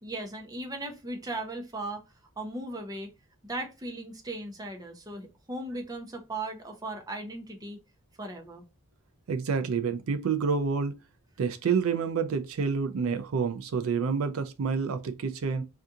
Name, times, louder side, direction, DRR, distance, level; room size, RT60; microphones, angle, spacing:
voice 1, 0.0-2.0 2.4-3.1 3.4-7.8 8.2-8.6, right 2 dB, 15° right, 0.6 m, -37 dB
voice 2, 9.3-10.9 11.4-15.6, right 5 dB, 70° right, 0.4 m, -28 dB
2.7 x 2.4 x 3.5 m
head